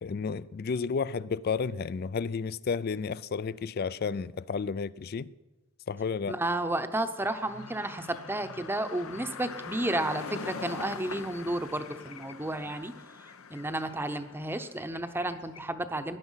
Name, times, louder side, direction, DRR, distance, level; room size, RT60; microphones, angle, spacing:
voice 1, 0.0-5.3 5.9-6.4, left 5 dB, 45° left, 0.4 m, -32 dB
voice 2, 6.3-12.9 13.5-16.2, right 1 dB, 10° right, 0.7 m, -32 dB
sound 1, 7.2-15.6, left 5 dB, 85° left, 0.9 m, -43 dB
18.5 x 10.5 x 5.7 m
head